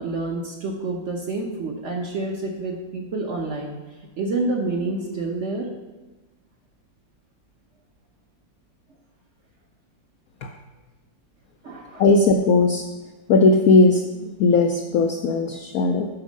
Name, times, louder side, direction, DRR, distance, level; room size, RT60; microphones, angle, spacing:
voice 1, 0.0-3.8 4.2-5.7 11.6-12.0, right 2 dB, 50° right, 1 dB, 0.9 m, -28 dB
voice 2, 12.0-12.8 13.3-16.1, left 3 dB, 75° left, 5 dB, 0.8 m, -18 dB
7.2 x 6.3 x 5.2 m, 1.2 s
omnidirectional pair, 2.1 m